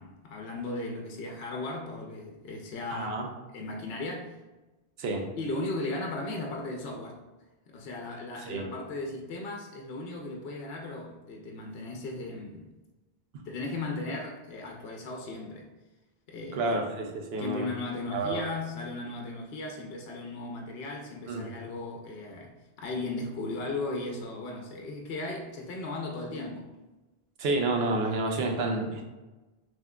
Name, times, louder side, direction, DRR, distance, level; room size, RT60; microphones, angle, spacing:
voice 1, 0.0-3.2 3.5-4.4 5.4-7.2 7.7-12.7 13.4-15.7 16.3-16.7 17.4-26.7, left 2 dB, 75° left, 1 dB, 0.8 m, -36 dB
voice 2, 2.9-3.3 5.0-5.2 8.5-8.7 16.5-17.7 18.1-18.5 21.3-21.5 27.4-29.0, right 2 dB, 75° right, 2 dB, 0.9 m, -29 dB
5.7 x 3.0 x 2.2 m, 1.1 s
omnidirectional pair, 1.1 m